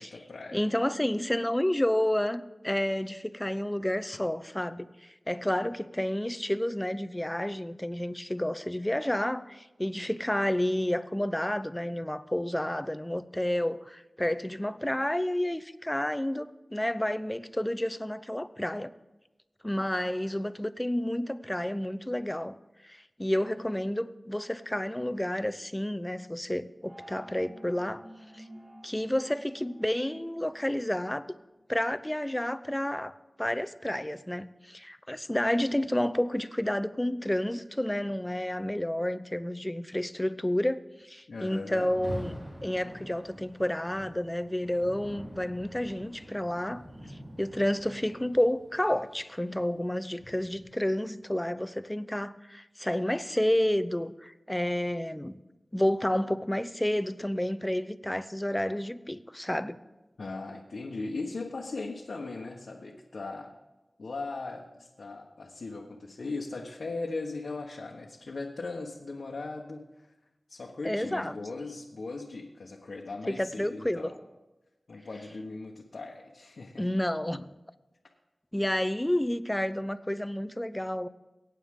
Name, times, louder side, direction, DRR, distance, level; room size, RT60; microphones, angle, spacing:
voice 1, 0.0-0.6 41.3-41.9 60.2-63.5 64.0-70.1 70.5-74.2 74.9-76.9, left 3 dB, 85° left, 1.2 m, -38 dB
voice 2, 0.5-18.9 19.6-22.5 22.8-28.0 28.3-28.4 28.8-31.2 31.7-42.3 42.6-55.4 55.7-59.8 70.8-71.4 73.3-74.1 76.8-77.5 78.5-81.1, left 1 dB, 15° left, 0.6 m, -30 dB
sound 1, 26.8-31.4, equal, 60° right, 5.8 m, -51 dB
Rain, 41.7-50.8, right 1 dB, 30° right, 4.2 m, -46 dB
23.0 x 9.0 x 3.7 m
wide cardioid pair, 55°, 0 cm